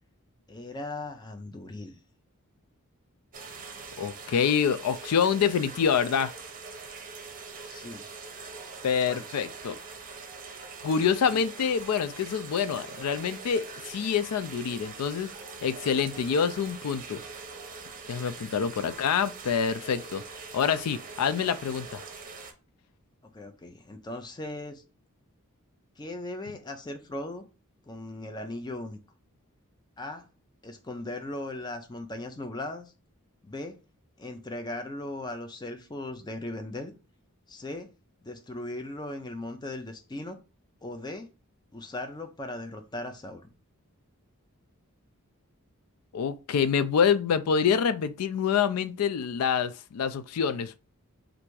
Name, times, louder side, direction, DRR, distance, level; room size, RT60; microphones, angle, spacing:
voice 1, 0.5-2.0 7.6-8.1 9.1-9.3 11.3-11.4 23.3-24.8 26.0-27.5 27.9-29.0 30.0-30.2 30.6-32.9 33.4-33.8 34.2-36.9 37.5-37.9 38.2-40.4 40.8-41.3 41.7-43.5, left 2 dB, 20° left, 0.5 m, -38 dB
sound 1, 3.3-22.5, right 4 dB, 40° right, 0.7 m, -43 dB
voice 2, 4.0-6.3 8.8-9.8 10.8-15.3 15.6-17.2 18.1-20.2 20.5-22.0 46.1-50.8, left 7 dB, 90° left, 0.4 m, -26 dB
3.3 x 2.6 x 4.5 m
head